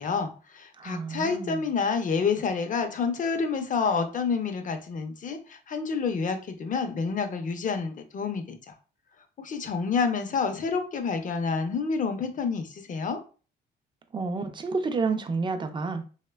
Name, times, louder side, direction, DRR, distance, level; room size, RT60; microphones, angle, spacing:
voice 1, 0.0-8.8 9.4-13.2, left 5 dB, 40° left, 0.5 m, -28 dB
voice 2, 0.8-1.6 14.1-16.0, right 4 dB, 25° right, 0.4 m, -30 dB
3.0 x 2.1 x 2.2 m
cardioid pair, 90°, 20 cm